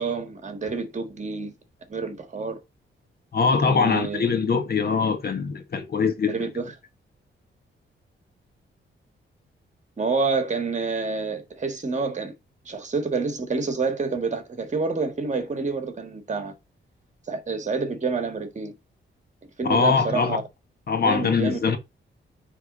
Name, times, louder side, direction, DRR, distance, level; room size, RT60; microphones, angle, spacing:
voice 1, 0.0-1.5 1.9-2.6 3.6-4.2 6.3-6.7 10.0-12.3 12.6-16.5 17.3-18.7 19.6-20.4 21.0-21.8, right 4 dB, 35° right, 1.7 m, -28 dB
voice 2, 3.3-6.3 19.6-20.4 20.9-21.8, left 5 dB, 50° left, 1.4 m, -22 dB
9.7 x 3.5 x 4.0 m
cardioid pair, 115°, 21 cm